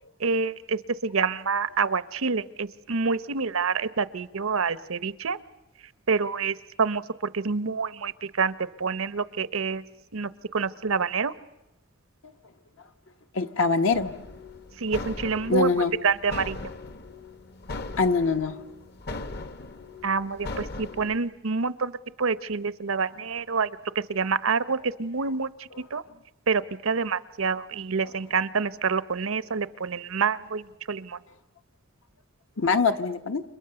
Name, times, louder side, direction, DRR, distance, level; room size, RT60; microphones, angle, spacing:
voice 1, 0.2-5.4 6.1-7.0 7.3-9.8 10.1-11.3 14.8-16.6 20.0-26.0 26.5-31.2, right 5 dB, 90° right, 16 dB, 0.8 m, -27 dB
voice 2, 13.3-14.1 15.5-15.9 18.0-18.6 32.6-33.4, left 4 dB, 75° left, 8 dB, 1.2 m, -23 dB
sound 1, 13.9-21.2, left 2 dB, 50° left, 1.0 m, -39 dB
30.0 x 26.0 x 6.9 m, 0.98 s
head